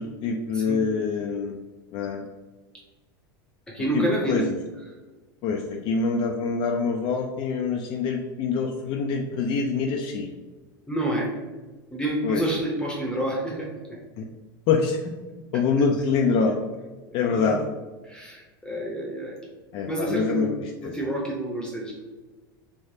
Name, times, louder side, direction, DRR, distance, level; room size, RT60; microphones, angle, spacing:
voice 1, 0.0-1.6 1.9-2.2 3.9-4.5 5.4-10.3 12.2-12.4 14.2-14.3 14.7-15.2 15.5-16.6 17.1-17.6 19.7-20.5 20.8-21.0, left 5 dB, 50° left, 2 dB, 0.4 m, -25 dB
voice 2, 3.7-4.4 10.9-11.3 11.9-13.7 17.1-17.6 18.0-19.4 19.8-20.6 20.8-21.9, right 1 dB, 5° left, -2 dB, 0.8 m, -28 dB
3.2 x 3.1 x 2.7 m, 1.3 s
hypercardioid pair, 95°, 12 cm